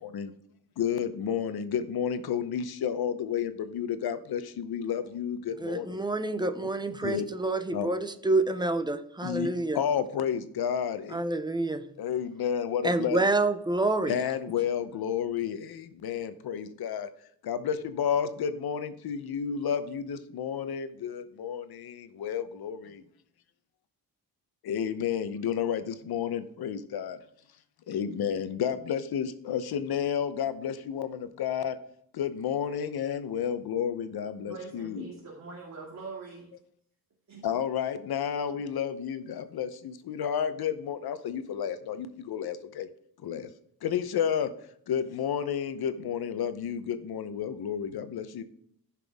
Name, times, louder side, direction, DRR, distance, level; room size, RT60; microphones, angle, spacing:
voice 1, 0.8-5.9 7.0-7.2 7.7-7.9 9.2-9.5 9.7-11.0 12.0-13.2 14.1-15.6 16.0-17.1 17.5-21.6 22.2-22.8 24.7-27.2 27.9-31.1 31.4-31.7 32.2-35.1 37.4-39.7 40.1-42.0 42.3-42.9 43.2-43.4 43.8-44.5 44.9-48.4, left 8 dB, 75° left, 0.9 m, -31 dB
voice 2, 5.6-9.8 11.1-11.9 12.8-14.2, right 2 dB, 10° right, 0.5 m, -28 dB
voice 3, 34.4-36.5 37.3-37.4, right 4 dB, 45° right, 2.3 m, -43 dB
14.5 x 6.0 x 3.6 m
wide cardioid pair, 165°, 37 cm